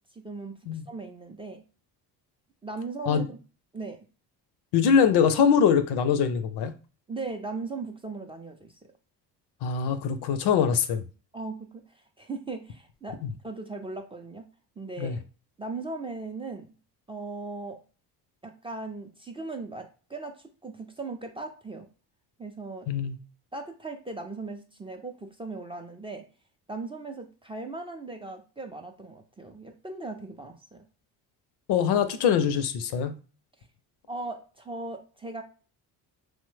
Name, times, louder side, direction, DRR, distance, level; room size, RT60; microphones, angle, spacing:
voice 1, 0.2-0.6 0.9-1.6 2.6-3.4 3.7-4.0 7.1-8.7 11.3-11.7 12.2-13.2 13.4-14.5 14.8-15.2 15.6-16.7 17.1-17.8 18.4-21.9 22.4-22.9 23.5-26.2 26.7-30.8 34.1-35.4, right 3 dB, 15° right, 0.3 m, -38 dB
voice 2, 4.7-6.7 9.6-11.0 13.2-13.3 15.0-15.2 22.9-23.2 31.7-33.1, left 7 dB, 70° left, 0.5 m, -23 dB
3.0 x 2.1 x 3.1 m
cardioid pair, 85°, 40 cm